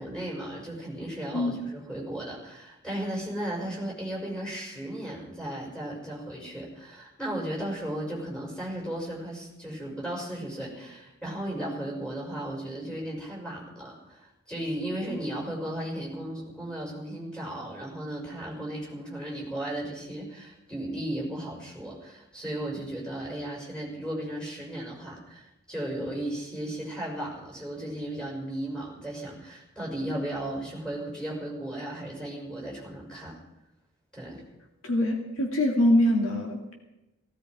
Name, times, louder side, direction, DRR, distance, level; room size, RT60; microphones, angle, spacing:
voice 1, 0.0-33.3 34.1-34.4, right 1 dB, 5° left, -4 dB, 5.6 m, -35 dB
voice 2, 34.8-36.7, left 1 dB, 60° left, 1 dB, 2.1 m, -24 dB
17.0 x 16.5 x 4.8 m, 0.94 s
head